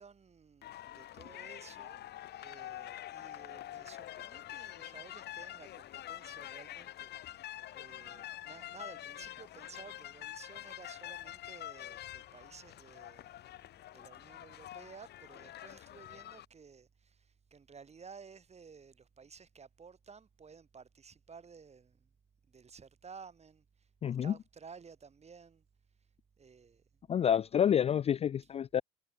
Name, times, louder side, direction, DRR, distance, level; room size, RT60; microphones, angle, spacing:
voice 1, 0.0-2.0 2.4-7.5 7.7-13.5 13.9-22.1 22.5-25.6 26.4-26.8, right 5 dB, 35° right, 5.5 m, -54 dB
sound 1, 0.6-16.5, left 13 dB, 55° left, 1.0 m, -46 dB
voice 2, 24.0-24.3 27.1-28.8, left 9 dB, 30° left, 0.4 m, -28 dB
supercardioid pair, 80°, 20 cm